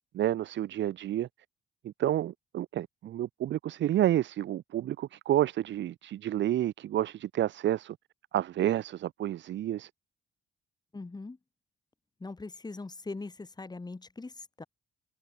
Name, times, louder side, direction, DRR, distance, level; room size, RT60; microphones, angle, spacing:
voice 1, 0.1-1.3 1.8-8.0 8.3-9.9, right 12 dB, 65° right, 0.8 m, -29 dB
voice 2, 10.9-11.4 12.2-14.6, left 3 dB, 20° left, 2.9 m, -41 dB
cardioid pair, 90°, 20 cm